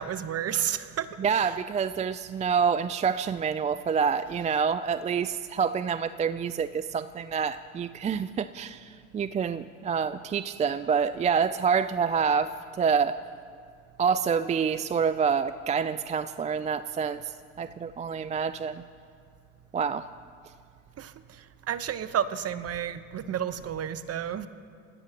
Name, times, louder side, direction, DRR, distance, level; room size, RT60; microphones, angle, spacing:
voice 1, 0.0-1.6 21.0-24.5, right 9 dB, 35° right, 12 dB, 1.0 m, -32 dB
voice 2, 1.2-13.2 14.0-17.2 17.6-18.8 19.7-20.1, right 6 dB, 20° right, 14 dB, 0.4 m, -27 dB
27.0 x 16.0 x 3.0 m, 2.3 s
hypercardioid pair, 70°, 40 cm